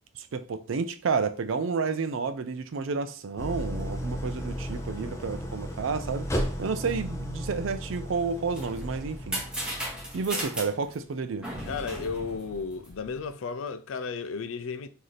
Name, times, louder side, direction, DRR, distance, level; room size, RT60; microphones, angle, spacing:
voice 1, 0.2-6.3 6.6-9.4 10.1-11.5, right 5 dB, 70° right, 0.4 m, -30 dB
Idling, 3.4-10.4, equal, 15° left, 0.6 m, -35 dB
sound 1, 8.2-13.3, right 1 dB, 5° right, 1.0 m, -37 dB
voice 2, 11.6-14.9, left 5 dB, 80° left, 0.4 m, -34 dB
3.2 x 2.7 x 3.9 m
head